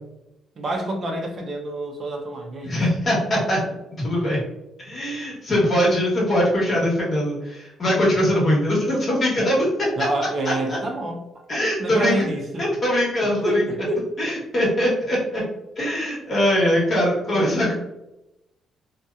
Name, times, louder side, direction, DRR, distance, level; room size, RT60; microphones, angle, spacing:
voice 1, 0.6-2.8 10.0-11.2 11.5-12.7 13.2-14.1 17.3-17.7, right 1 dB, 45° right, 1 dB, 0.4 m, -28 dB
voice 2, 2.6-3.6 4.0-4.4 4.8-9.7 10.4-10.5 11.5-12.2 12.6-13.6 14.2-15.4 15.8-17.7, equal, 45° left, -4 dB, 1.1 m, -21 dB
2.6 x 2.0 x 2.3 m, 0.94 s
cardioid pair, 90°, 0 cm